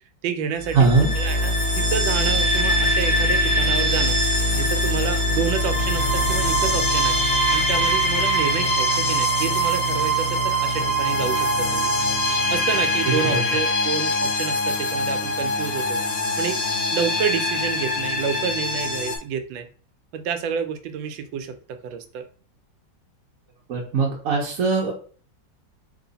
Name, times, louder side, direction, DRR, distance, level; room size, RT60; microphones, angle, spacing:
voice 1, 0.2-0.8 1.2-4.2 4.5-7.2 7.5-11.9 12.5-16.0 16.4-16.6 16.9-19.7 20.1-21.6 21.8-22.3, right 7 dB, 90° right, 8 dB, 1.3 m, -29 dB
sound 1, 0.6-19.2, equal, 50° left, 1.2 m, -22 dB
voice 2, 0.7-1.1 13.1-13.4 23.7-24.9, right 4 dB, 60° right, -2 dB, 1.0 m, -20 dB
3.2 x 3.1 x 3.9 m, 0.42 s
omnidirectional pair, 2.0 m